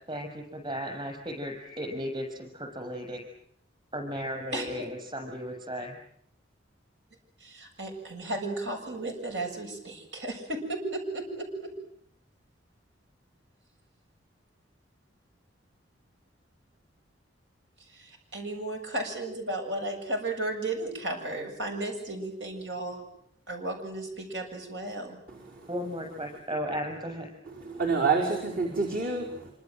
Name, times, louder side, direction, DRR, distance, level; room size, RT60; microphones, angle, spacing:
voice 1, 0.1-3.2 3.9-6.0 25.7-27.3, equal, 25° right, 4 dB, 7.4 m, -35 dB
voice 2, 7.4-11.7 17.9-23.0 23.5-25.2, right 2 dB, 75° right, 4 dB, 7.4 m, -34 dB
voice 3, 25.3-25.7 27.5-29.5, right 4 dB, 50° right, 0 dB, 5.4 m, -28 dB
26.5 x 26.0 x 7.8 m, 0.68 s
head